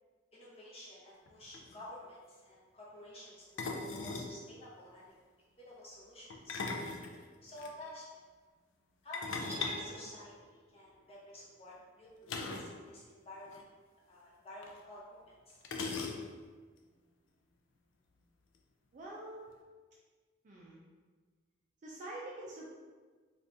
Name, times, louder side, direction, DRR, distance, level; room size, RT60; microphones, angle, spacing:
voice 1, 0.3-5.1 5.6-6.6 7.4-8.2 9.0-13.7 14.1-15.6, left 1 dB, 30° left, -6 dB, 0.8 m, -51 dB
sound 1, 1.3-1.4 1.5-1.8 3.6-4.4 6.3-7.7 9.1-10.8 12.3-12.8 13.0-13.1 13.5-13.6 14.6-14.7 15.6-16.5, left 3 dB, 75° left, 0.4 m, -39 dB
sound 2, 9.4-10.7, right 1 dB, 15° right, 0.8 m, -48 dB
voice 2, 18.9-19.6 20.4-20.8 21.8-22.7, right 1 dB, 40° right, -4 dB, 0.4 m, -46 dB
2.7 x 2.4 x 3.4 m, 1.5 s
head